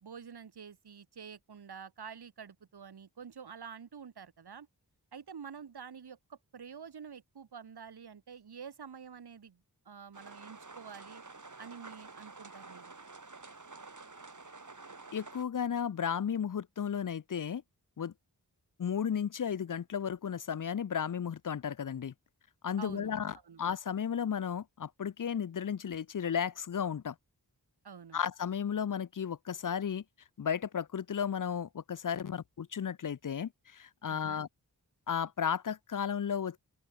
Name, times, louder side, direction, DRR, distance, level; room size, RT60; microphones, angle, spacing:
voice 1, 0.0-4.7 5.1-11.2 11.6-13.0 22.8-23.1 23.4-23.6 27.8-28.2 34.1-34.4, right 6 dB, 75° right, 1.1 m, -48 dB
sound 1, 10.1-15.4, right 3 dB, 50° right, 3.0 m, -50 dB
voice 2, 15.1-17.6 18.0-18.1 18.8-22.1 22.6-27.1 28.1-30.0 30.4-34.5 35.1-36.6, left 7 dB, 55° left, 0.5 m, -34 dB
open air
wide cardioid pair, 70°, 39 cm